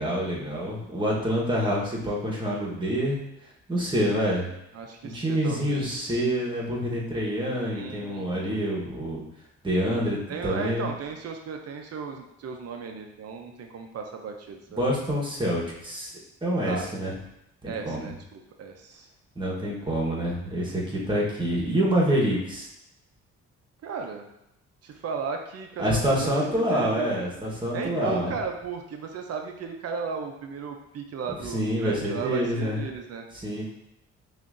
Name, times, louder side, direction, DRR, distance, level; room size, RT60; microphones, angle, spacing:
voice 1, 0.0-3.2 3.7-4.5 5.1-9.2 9.6-10.8 14.8-16.1 16.4-17.1 17.6-18.1 19.4-22.7 25.8-28.3 31.4-32.8 33.3-33.7, equal, 15° right, -4 dB, 1.2 m, -27 dB
voice 2, 4.7-6.2 7.7-8.6 10.3-14.9 16.7-16.9 17.7-19.1 23.8-24.3 24.8-26.4 26.7-27.1 27.7-33.3, right 5 dB, 55° right, 4 dB, 0.6 m, -35 dB
5.7 x 2.6 x 2.5 m, 0.83 s
cardioid pair, 90°, 30 cm